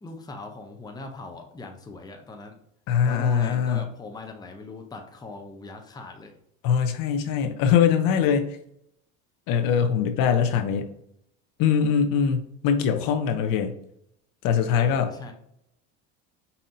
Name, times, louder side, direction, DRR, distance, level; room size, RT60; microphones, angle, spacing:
voice 1, 0.0-2.6 3.0-6.3 14.7-15.3, left 2 dB, 10° left, 4 dB, 0.6 m, -40 dB
voice 2, 2.9-3.9 6.6-8.6 9.5-10.9 11.6-13.8 14.4-15.1, left 7 dB, 60° left, 6 dB, 0.7 m, -22 dB
5.3 x 2.8 x 2.6 m, 0.72 s
hypercardioid pair, 85°, 40 cm